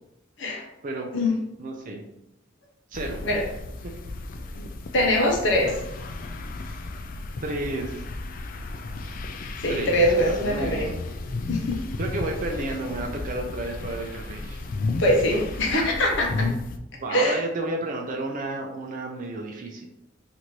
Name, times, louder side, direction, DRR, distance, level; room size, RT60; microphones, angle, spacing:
voice 1, 1.6-2.0 2.9-3.2 7.4-8.0 9.7-9.9 10.2-10.9 12.0-14.6 15.3-15.8 16.3-16.4 16.9-19.9, right 2 dB, 40° right, 1 dB, 0.4 m, -32 dB
sound 1, 2.9-16.8, left 2 dB, 45° left, 0.3 m, -33 dB
voice 2, 4.9-5.7 9.6-10.9 11.5-11.8 15.0-16.5 17.1-17.4, left 1 dB, 60° left, -1 dB, 0.7 m, -23 dB
3.0 x 2.6 x 4.4 m, 0.84 s
head